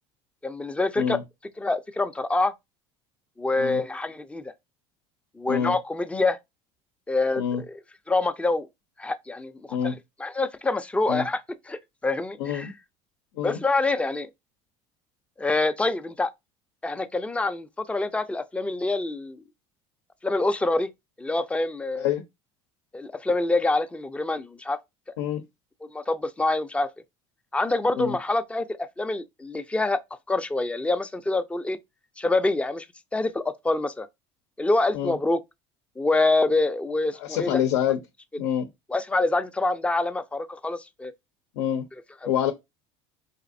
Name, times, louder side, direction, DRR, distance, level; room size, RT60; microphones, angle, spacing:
voice 1, 0.4-1.2 1.6-2.5 3.4-4.5 5.4-6.4 7.1-7.8 8.1-8.7 9.0-9.5 9.8-11.4 11.7-12.7 13.4-14.3 15.4-16.3 16.8-19.4 20.2-20.9 21.2-22.1 22.9-24.8 25.8-26.9 27.5-28.7 29.0-30.0 30.3-31.8 32.2-32.9 33.1-34.1 34.6-35.4 36.0-37.6 38.9-41.1, left 2 dB, 10° left, 0.4 m, -26 dB
voice 2, 12.4-12.7 13.3-13.6 22.0-22.2 25.2-25.4 28.0-28.2 34.9-35.2 37.2-38.0 38.4-38.7 41.6-41.9 42.3-42.5, left 9 dB, 85° left, 0.6 m, -26 dB
4.1 x 2.5 x 2.5 m
supercardioid pair, 100°, 14 cm